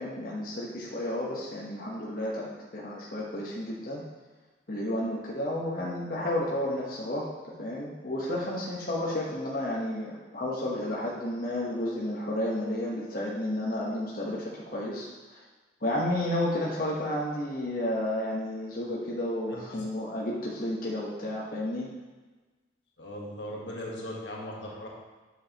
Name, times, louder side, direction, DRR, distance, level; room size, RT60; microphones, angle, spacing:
voice 1, 0.0-4.0 4.7-7.3 7.6-15.1 15.8-21.9, left 1 dB, 50° left, -6 dB, 1.1 m, -31 dB
voice 2, 23.0-24.9, left 1 dB, 70° left, -2 dB, 1.4 m, -38 dB
8.1 x 6.4 x 2.9 m, 1.3 s
head